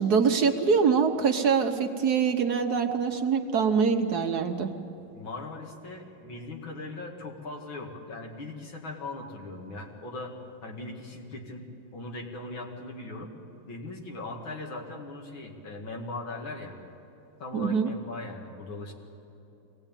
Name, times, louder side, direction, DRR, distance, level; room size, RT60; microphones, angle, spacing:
voice 1, 0.0-4.7 17.5-17.9, right 6 dB, 60° right, 6 dB, 1.4 m, -24 dB
voice 2, 5.1-10.3 10.6-11.6 11.9-13.3 13.6-16.8 17.4-18.9, left 2 dB, 85° left, 1 dB, 2.9 m, -39 dB
23.5 x 18.0 x 9.0 m, 2.9 s
omnidirectional pair, 2.1 m